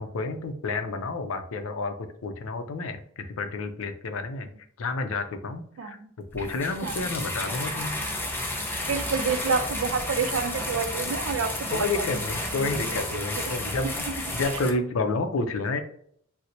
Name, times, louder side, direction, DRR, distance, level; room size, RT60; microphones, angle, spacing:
voice 1, 0.0-1.9 2.2-4.5 4.8-6.0 6.3-8.0 11.7-15.8, left 3 dB, 75° left, 7 dB, 0.5 m, -30 dB
voice 2, 5.8-6.1 6.8-7.1 8.7-12.0 12.5-13.7, right 5 dB, 65° right, 9 dB, 0.4 m, -29 dB
sound 1, 6.3-14.7, left 1 dB, 10° left, 0.4 m, -32 dB
4.2 x 2.0 x 2.6 m, 0.64 s
head